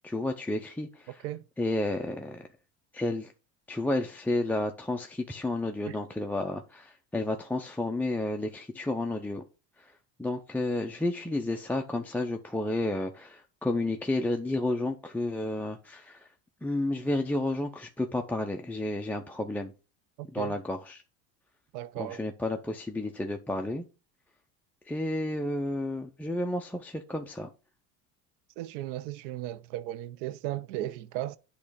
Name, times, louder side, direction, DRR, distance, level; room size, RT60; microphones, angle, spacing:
voice 1, 0.0-1.2 1.6-2.5 2.9-3.3 3.7-9.4 10.2-16.2 16.6-19.7 20.3-21.0 22.0-23.8 24.9-27.5, left 1 dB, 5° left, 0.5 m, -31 dB
voice 2, 1.1-1.4 5.9-6.0 20.4-20.6 21.7-22.2 28.6-31.4, right 14 dB, 85° right, 0.7 m, -36 dB
8.5 x 3.2 x 4.9 m
supercardioid pair, 110°, 36 cm